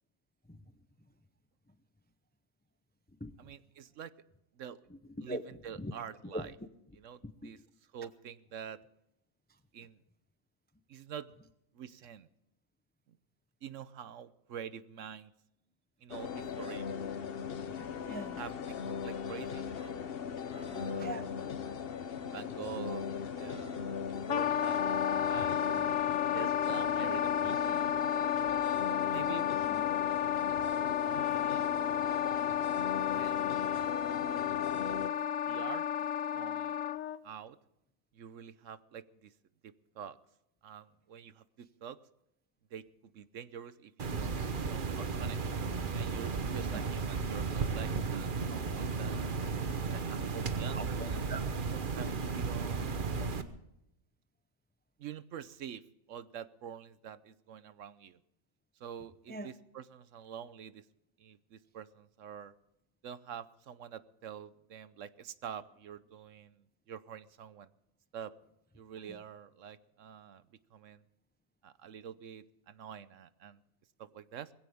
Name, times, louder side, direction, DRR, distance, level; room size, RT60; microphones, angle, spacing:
voice 1, 3.4-4.1 4.6-4.8 5.2-6.5 7.0-7.6 7.9-8.8 9.7-10.0 10.9-11.3 11.7-12.3 13.1-13.2 13.6-15.3 16.0-16.9 18.3-20.0 20.5-21.9 22.3-23.1 23.3-24.8 25.1-25.9 26.3-28.0 29.1-29.5 31.3-31.7 33.1-33.5 35.5-35.8 36.3-36.8 37.2-37.6 38.1-39.3 39.6-40.2 40.6-42.0 42.7-45.5 45.9-49.3 49.9-51.3 51.7-53.0 55.0-55.8 56.1-58.2 58.8-60.8 61.2-62.5 63.0-67.7 68.1-68.3 68.7-70.4 70.7-71.0 71.6-73.6 74.0-74.5, right 8 dB, 65° right, 15 dB, 1.0 m, -46 dB
voice 2, 4.9-5.4 5.8-5.9 6.3-6.5 7.2-7.5 17.6-18.4 20.8-21.3 29.6-29.8 46.7-46.8 50.7-51.4 59.3-59.5 69.1-69.2, right 1 dB, 10° left, 11 dB, 0.4 m, -42 dB
sound 1, 16.1-35.1, left 7 dB, 50° left, 0.9 m, -39 dB
Wind instrument woodwind instrument, 24.3-37.2, left 10 dB, 70° left, 1.0 m, -32 dB
sound 2, 44.0-53.4, right 4 dB, 40° right, 1.1 m, -34 dB
20.5 x 16.0 x 3.5 m, 0.82 s
omnidirectional pair, 1.5 m